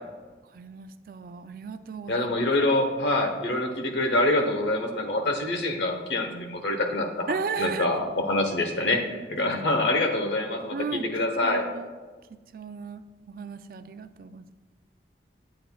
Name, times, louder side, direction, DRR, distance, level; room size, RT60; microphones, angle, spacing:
voice 1, 0.5-2.3 7.3-7.9 9.4-9.8 10.7-11.9 12.3-14.5, right 5 dB, 55° right, 11 dB, 0.3 m, -35 dB
voice 2, 2.1-7.3 7.6-11.7, left 2 dB, 85° left, 4 dB, 1.0 m, -25 dB
9.1 x 7.7 x 2.3 m, 1.3 s
head